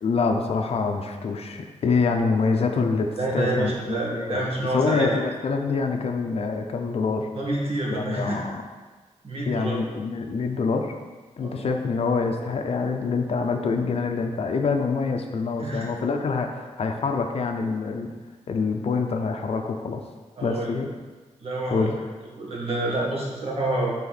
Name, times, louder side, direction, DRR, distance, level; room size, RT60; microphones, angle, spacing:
voice 1, 0.0-3.1 3.3-4.5 4.7-7.3 7.9-8.6 9.5-10.9 11.4-18.1 18.5-20.0 20.4-20.9 21.7-21.9, left 4 dB, 55° left, 4 dB, 0.6 m, -25 dB
voice 2, 3.2-5.2 7.4-8.4 9.2-9.8 11.4-11.7 15.6-15.9 20.4-20.7 21.4-21.9 22.4-23.9, right 2 dB, 50° right, -4 dB, 1.7 m, -27 dB
8.5 x 4.2 x 4.2 m, 1.4 s
wide cardioid pair, 160°, 12 cm